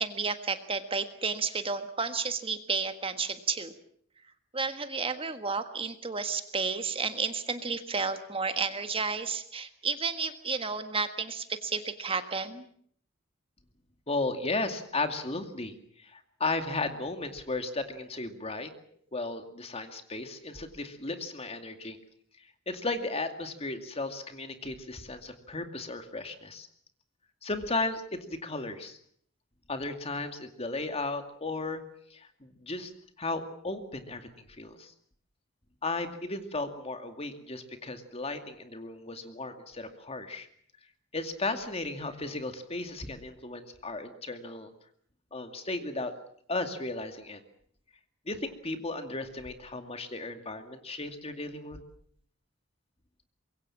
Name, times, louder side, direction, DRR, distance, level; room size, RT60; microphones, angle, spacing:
voice 1, 0.0-3.7 4.5-12.6, right 5 dB, 30° right, 9 dB, 1.6 m, -32 dB
voice 2, 14.1-18.7 19.1-22.0 22.4-26.7 27.4-29.0 29.7-31.8 32.1-32.9 33.2-34.9 35.8-40.5 41.1-44.7 45.3-46.1 46.5-47.4 48.3-51.8, left 2 dB, 30° left, 7 dB, 2.4 m, -35 dB
25.0 x 22.0 x 7.3 m, 0.63 s
head